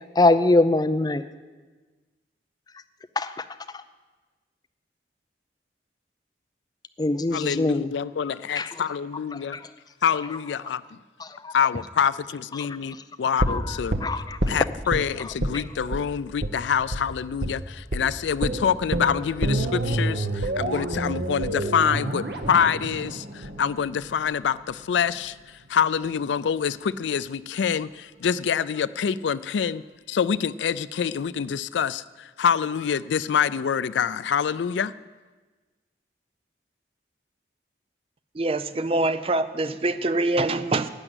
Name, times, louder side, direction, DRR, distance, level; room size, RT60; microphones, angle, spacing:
voice 1, 0.2-1.2 3.2-3.3 7.0-7.9 8.6-8.7 11.4-11.5 13.5-13.6 14.0-14.4, left 2 dB, 20° left, 0.5 m, -22 dB
voice 2, 7.3-9.6 10.0-10.8 11.5-14.0 14.5-25.3 25.7-29.8 30.1-34.9, left 7 dB, 80° left, 0.4 m, -26 dB
sound 1, 13.4-15.0 15.4-15.6 15.9-16.0 16.4-16.5 16.9-17.0 17.4-17.6 17.9-18.0 18.4-24.4 24.7-24.8, right 1 dB, 70° right, 1.2 m, -28 dB
voice 3, 38.3-40.9, right 2 dB, 30° right, 0.5 m, -24 dB
12.0 x 9.0 x 7.9 m
head